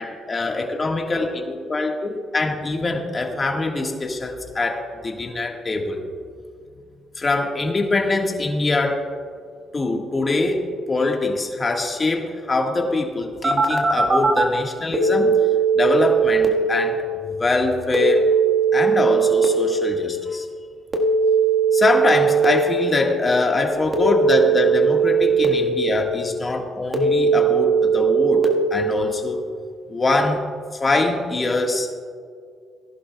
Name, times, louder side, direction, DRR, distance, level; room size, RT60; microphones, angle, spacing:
voice 1, 0.0-6.0 7.1-9.1 9.7-15.4 15.7-18.3 18.7-20.5 21.7-29.4 29.9-30.4 30.7-31.9, left 2 dB, 30° left, 1 dB, 1.6 m, -23 dB
Telephone, 13.4-14.4 14.9-16.4 17.9-19.4 20.9-22.4 23.9-25.4 26.9-28.4, right 5 dB, 35° right, 1.5 m, -18 dB
18.5 x 11.0 x 2.3 m, 2.2 s
cardioid pair, 90°, 0 cm